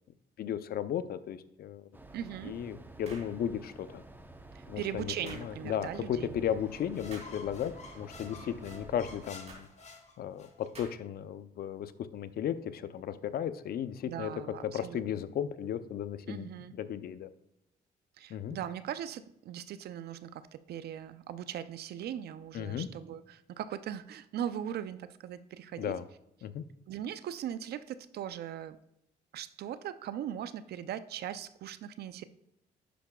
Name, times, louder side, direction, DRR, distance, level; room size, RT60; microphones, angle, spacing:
voice 1, 0.4-1.9 2.4-4.0 4.7-9.7 10.2-14.3 14.6-16.5 16.8-17.3 18.3-18.6 22.5-22.9 25.8-26.0 26.4-26.6, left 9 dB, 65° left, 13 dB, 0.5 m, -35 dB
sound 1, 1.9-9.3, right 2 dB, 10° right, 0.8 m, -50 dB
voice 2, 2.1-2.6 4.5-6.4 14.1-15.2 16.3-16.7 18.2-25.9 26.9-28.8 29.3-32.2, right 10 dB, 70° right, 14 dB, 0.4 m, -39 dB
sound 2, 3.0-3.4 5.3-5.5 7.1-7.4 9.5-9.7 10.7-11.1, right 2 dB, 40° right, 2.7 m, -49 dB
sound 3, 6.6-10.7, left 3 dB, 40° left, 1.3 m, -50 dB
10.0 x 5.8 x 2.3 m, 0.83 s
cardioid pair, 75°, 17 cm